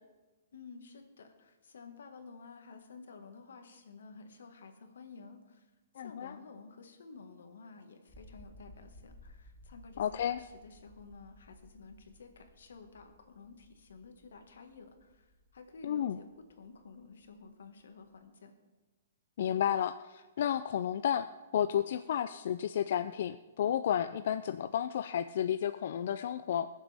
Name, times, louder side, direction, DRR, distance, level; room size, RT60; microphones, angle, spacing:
voice 1, 0.5-5.7 5.9-16.3 16.6-18.5, left 4 dB, 80° left, 6 dB, 1.6 m, -52 dB
voice 2, 6.0-6.3 10.0-10.4 15.8-16.2 19.4-21.3 21.5-26.7, left 9 dB, 50° left, 10 dB, 0.3 m, -32 dB
sound 1, 8.1-18.2, left 1 dB, 5° left, 1.6 m, -59 dB
21.5 x 7.3 x 3.5 m, 1.2 s
hypercardioid pair, 175°, 0 cm